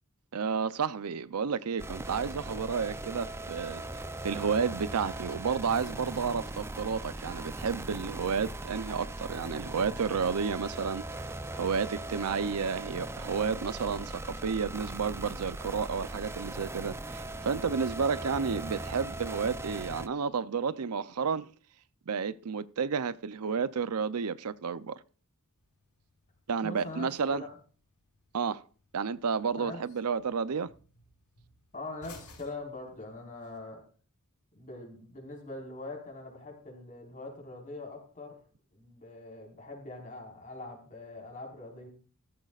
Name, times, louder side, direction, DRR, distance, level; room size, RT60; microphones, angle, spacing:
voice 1, 0.3-11.2 11.5-21.5 22.1-25.0 26.5-27.4 28.3-28.6 28.9-30.7, right 6 dB, 85° right, 0.6 m, -31 dB
sound 1, 1.8-20.1, right 2 dB, 10° right, 0.5 m, -39 dB
sound 2, 25.6-33.6, left 3 dB, 90° left, 6.3 m, -59 dB
voice 2, 26.6-27.5 29.6-29.8 31.7-33.8 34.5-38.4 38.7-41.9, left 2 dB, 35° left, 4.6 m, -43 dB
15.5 x 14.5 x 2.4 m
head